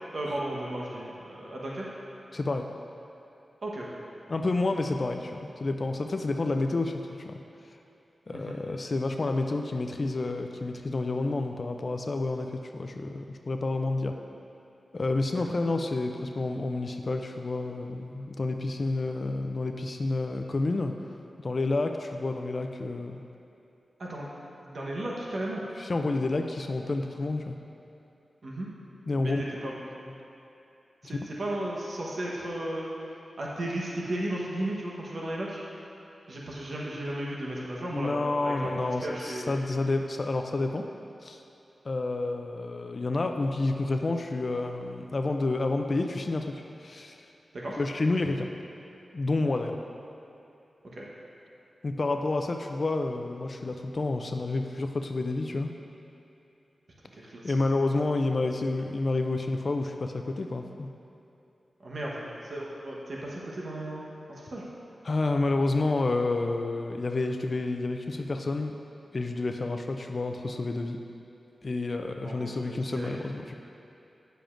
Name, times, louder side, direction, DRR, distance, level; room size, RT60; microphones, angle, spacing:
voice 1, 0.1-1.9 3.6-3.9 8.3-8.6 15.3-15.4 24.0-24.3 24.6-25.6 28.4-28.7 29.2-29.8 31.0-32.9 33.4-35.6 36.3-38.2 38.4-39.5 47.5-47.8 50.9-51.1 57.1-57.5 61.8-64.0 64.3-64.6 72.2-73.3, right 1 dB, 65° right, -4 dB, 1.1 m, -35 dB
voice 2, 2.3-2.7 4.3-7.4 8.3-14.2 14.9-20.9 21.4-23.2 25.8-27.6 29.1-29.4 37.9-40.8 41.2-41.4 41.8-47.2 47.8-48.5 49.1-49.8 51.8-55.7 57.4-60.9 65.0-68.8 69.1-71.0 71.6-73.6, left 2 dB, 50° left, 5 dB, 0.4 m, -29 dB
9.0 x 6.8 x 2.5 m, 2.9 s
cardioid pair, 60°, 0 cm